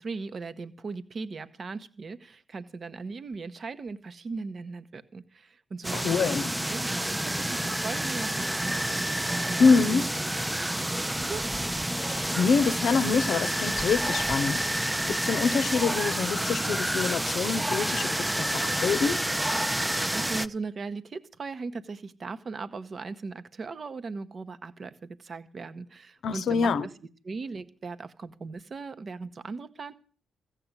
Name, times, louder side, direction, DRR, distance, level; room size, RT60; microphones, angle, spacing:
voice 1, 0.0-11.4 20.1-26.9 27.2-29.9, right 4 dB, 50° right, 1.1 m, -38 dB
sound 1, 5.8-20.5, right 1 dB, 10° right, 0.6 m, -29 dB
voice 2, 5.9-6.5 9.6-10.1 12.1-19.2 26.2-26.9, left 5 dB, 65° left, 0.7 m, -26 dB
15.0 x 7.5 x 8.2 m
supercardioid pair, 50°, 0 cm